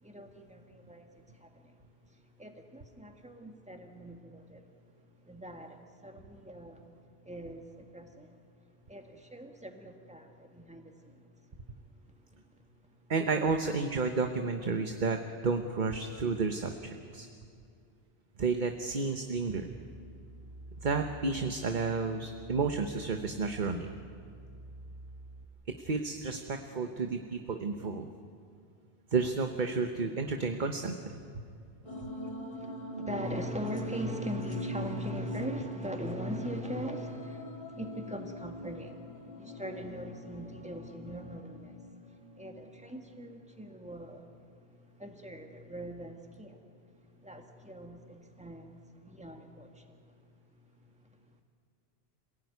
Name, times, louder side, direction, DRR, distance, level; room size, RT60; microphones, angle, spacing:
voice 1, 0.0-1.8 2.4-4.6 5.3-6.8 7.2-8.3 8.9-11.2 31.8-44.4 44.7-46.6 47.2-50.0, equal, 5° right, 3 dB, 1.9 m, -41 dB
voice 2, 13.1-15.2 15.4-17.3 18.4-19.7 20.8-23.9 25.8-28.1 29.1-31.2 32.0-32.1, right 4 dB, 50° right, 5 dB, 1.2 m, -31 dB
sound 1, 19.5-25.4, right 2 dB, 25° right, 1.8 m, -50 dB
sound 2, 31.8-43.3, equal, 30° left, 1.9 m, -43 dB
27.0 x 17.0 x 9.5 m, 2.4 s
omnidirectional pair, 1.1 m